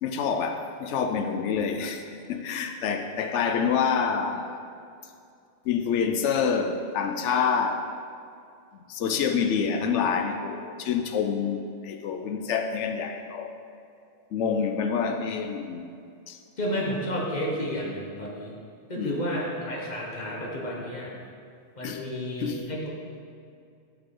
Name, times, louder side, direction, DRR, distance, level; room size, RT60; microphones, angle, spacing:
voice 1, 0.0-4.5 5.6-7.9 8.9-13.5 14.3-15.9 16.3-16.4 19.0-19.3 21.8-22.0 22.4-22.6, left 6 dB, 80° left, 6 dB, 0.9 m, -27 dB
voice 2, 16.6-18.6 18.9-21.1 21.8-22.9, equal, 40° left, -3 dB, 1.1 m, -31 dB
6.3 x 6.1 x 3.7 m, 2.4 s
omnidirectional pair, 1.2 m